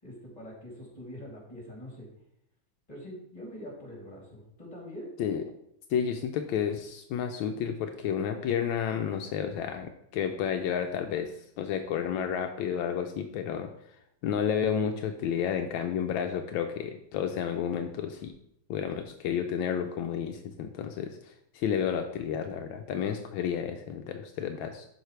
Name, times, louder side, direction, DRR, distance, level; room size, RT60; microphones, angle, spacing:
voice 1, 0.0-2.1 2.9-5.1, equal, 20° left, -3 dB, 2.6 m, -44 dB
voice 2, 5.9-13.7 14.2-18.3 18.7-24.9, left 8 dB, 80° left, 5 dB, 1.3 m, -31 dB
11.0 x 4.8 x 3.2 m, 0.76 s
omnidirectional pair, 2.1 m